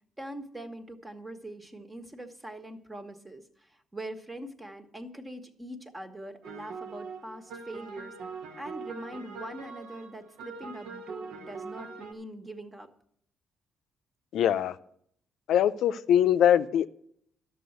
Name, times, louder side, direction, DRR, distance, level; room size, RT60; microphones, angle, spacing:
voice 1, 0.2-8.1 8.6-12.9, right 1 dB, 15° right, 1.4 m, -42 dB
sound 1, 6.4-12.1, right 5 dB, 85° right, 1.3 m, -42 dB
voice 2, 14.3-14.8 15.5-16.9, left 10 dB, 80° left, 0.5 m, -22 dB
11.5 x 6.9 x 8.0 m
cardioid pair, 90°, 0 cm